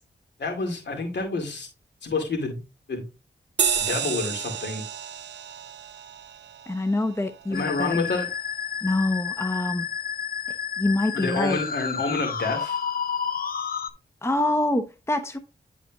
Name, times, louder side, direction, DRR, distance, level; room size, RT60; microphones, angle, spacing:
voice 1, 0.4-1.7 2.0-2.6 2.9-3.1 3.7-4.8 7.5-8.3 11.1-12.8, left 3 dB, 70° left, 2.4 m, -28 dB
sound 1, 3.6-8.5, right 7 dB, 75° right, 0.7 m, -31 dB
voice 2, 6.7-8.0 8.8-9.9 10.8-11.6 14.2-15.4, left 2 dB, 15° left, 0.8 m, -25 dB
Musical instrument, 7.5-13.9, left 7 dB, 55° left, 0.7 m, -31 dB
10.5 x 4.1 x 2.3 m
supercardioid pair, 45°, 19 cm